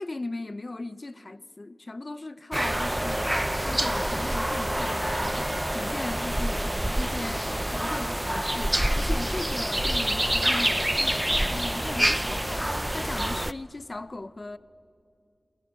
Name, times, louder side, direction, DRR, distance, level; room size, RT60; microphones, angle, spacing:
voice 1, 0.0-3.3 3.6-14.6, left 2 dB, 40° left, 0.7 m, -38 dB
sound 1, 2.5-13.5, right 1 dB, 15° right, 0.6 m, -27 dB
27.5 x 22.5 x 8.3 m
wide cardioid pair, 60°, 0 cm